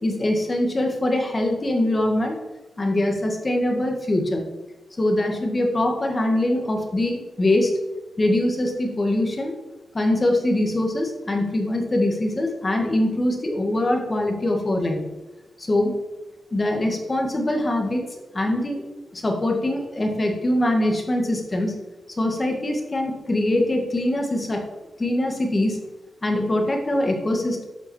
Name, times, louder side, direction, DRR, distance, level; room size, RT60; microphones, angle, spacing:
voice 1, 0.0-2.4 2.8-4.5 5.0-7.7 8.2-9.6 9.9-15.0 15.6-16.0 16.5-18.0 18.3-18.9 19.1-21.7 22.2-24.6 25.0-25.8 26.2-27.6, left 1 dB, 20° left, 2 dB, 2.0 m, -23 dB
11.5 x 6.0 x 7.2 m, 1.1 s
wide cardioid pair, 175°, 0 cm